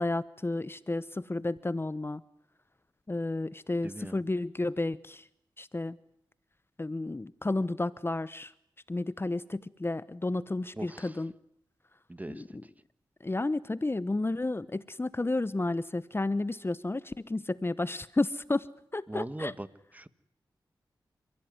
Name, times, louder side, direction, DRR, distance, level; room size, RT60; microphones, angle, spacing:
voice 1, 0.0-2.2 3.1-5.3 5.6-6.0 6.8-8.5 8.9-11.3 12.3-12.4 13.2-18.7 18.9-19.5, left 2 dB, 30° left, 17 dB, 0.9 m, -32 dB
voice 2, 3.8-4.2 10.7-11.2 12.1-12.4 19.1-19.7 19.9-20.1, right 1 dB, 20° right, 14 dB, 1.7 m, -39 dB
29.0 x 16.0 x 9.5 m, 0.72 s
cardioid pair, 45°, 8 cm